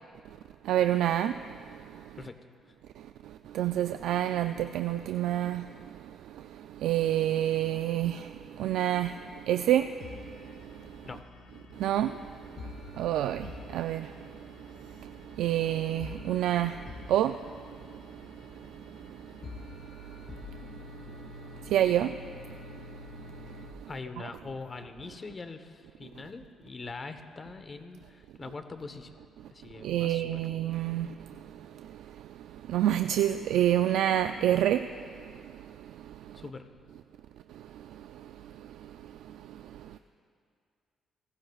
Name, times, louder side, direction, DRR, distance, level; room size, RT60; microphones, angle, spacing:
voice 1, 0.7-1.3 3.5-5.6 6.8-8.2 8.6-9.1 9.5-9.9 11.8-12.1 13.0-13.5 13.7-14.1 15.4-16.7 17.1-17.3 21.7-22.1 29.8-31.1 32.7-34.8, right 12 dB, 85° right, 0.3 m, -26 dB
sound 1, 10.0-23.7, left 4 dB, 60° left, 1.4 m, -48 dB
voice 2, 23.9-29.2 29.5-30.4 36.3-36.7, left 4 dB, 35° left, 1.0 m, -42 dB
24.5 x 18.5 x 2.4 m
cardioid pair, 90°, 0 cm